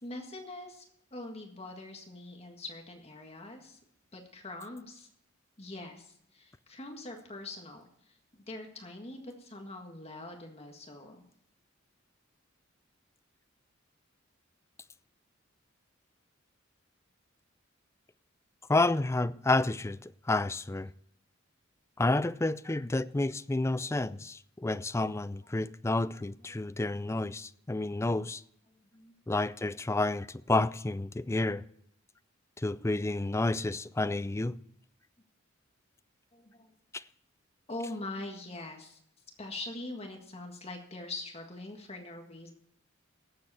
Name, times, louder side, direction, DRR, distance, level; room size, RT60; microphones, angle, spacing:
voice 1, 0.0-0.8 1.1-3.8 4.1-5.1 5.6-8.2 8.5-11.2 26.3-26.6 28.7-29.1 36.3-36.7 37.7-39.0 39.4-42.5, left 2 dB, 30° left, 1.8 m, -43 dB
voice 2, 18.7-20.9 22.0-28.4 29.3-31.6 32.6-34.5 36.9-37.0, left 2 dB, 15° left, 0.4 m, -30 dB
18.0 x 7.8 x 4.3 m
head